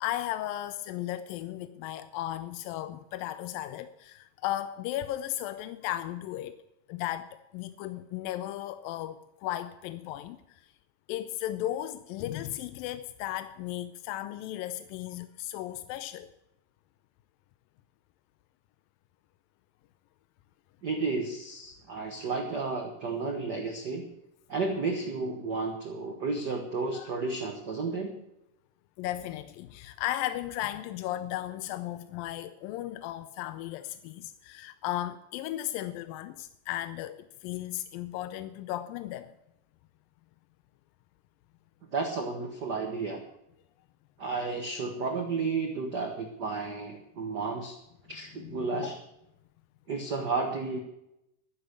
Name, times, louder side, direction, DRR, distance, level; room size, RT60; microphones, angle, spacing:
voice 1, 0.0-6.6 6.9-10.6 11.1-16.3 26.9-27.1 29.0-39.3 48.4-48.9, left 13 dB, 85° left, 2.4 m, -35 dB
voice 2, 20.8-24.1 24.5-28.2 41.9-43.2 44.2-47.8 48.1-48.9 49.9-50.8, right 4 dB, 90° right, 0.9 m, -32 dB
12.5 x 10.0 x 6.6 m
omnidirectional pair, 4.0 m